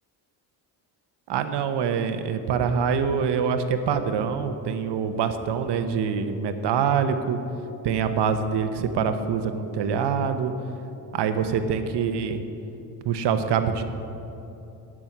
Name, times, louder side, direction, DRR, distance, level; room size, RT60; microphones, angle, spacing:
voice 1, 1.3-7.4 7.8-10.5 11.1-12.4 13.0-13.8, right 6 dB, 70° right, 9 dB, 1.0 m, -25 dB
11.0 x 6.2 x 9.1 m, 2.9 s
cardioid pair, 80°, 42 cm